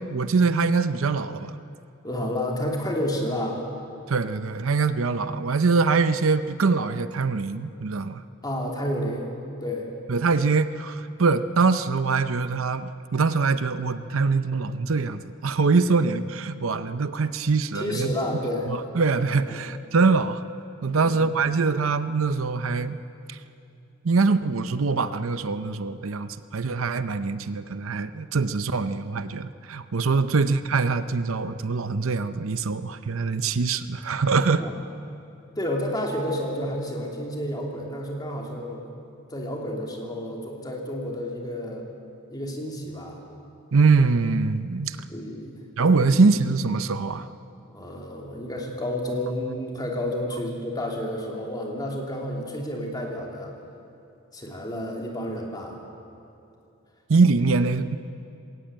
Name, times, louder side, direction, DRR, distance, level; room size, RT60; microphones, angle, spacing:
voice 1, 0.1-1.6 4.1-8.2 10.1-18.1 18.7-20.4 20.8-23.0 23.3-23.4 24.0-34.7 43.7-45.0 45.8-47.3 57.1-58.0, right 4 dB, 70° right, 12 dB, 0.7 m, -23 dB
voice 2, 2.0-3.7 8.4-9.3 9.6-9.9 17.7-18.8 19.5-19.7 21.0-21.2 30.0-30.3 34.6-34.8 35.6-38.8 39.3-41.9 42.3-43.2 45.1-45.6 46.1-46.2 47.7-53.6 54.3-55.8, left 1 dB, 20° left, 0 dB, 3.0 m, -30 dB
21.0 x 18.0 x 8.7 m, 2.7 s
head